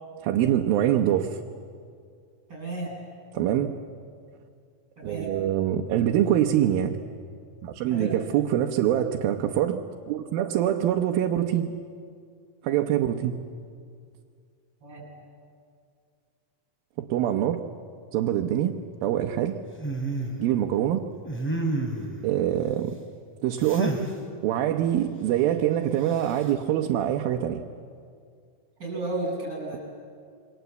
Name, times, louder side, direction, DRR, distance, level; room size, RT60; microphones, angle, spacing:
voice 1, 0.2-1.4 3.3-3.7 5.0-7.0 7.6-9.8 10.1-11.7 12.6-13.4 17.0-17.6 18.1-18.7 19.0-19.6 20.4-21.0 22.2-23.0 23.4-24.0 24.4-27.6, right 11 dB, 90° right, 2 dB, 2.8 m, -24 dB
voice 2, 2.5-2.9 5.0-5.3 7.9-8.2 14.8-15.1 28.8-29.8, right 2 dB, 25° right, 1 dB, 8.2 m, -33 dB
sound 1, 19.8-20.4 21.2-22.2 23.6-24.1 26.1-26.5, right 2 dB, 5° left, 2.7 m, -29 dB
27.5 x 24.0 x 8.2 m, 2.2 s
omnidirectional pair, 4.1 m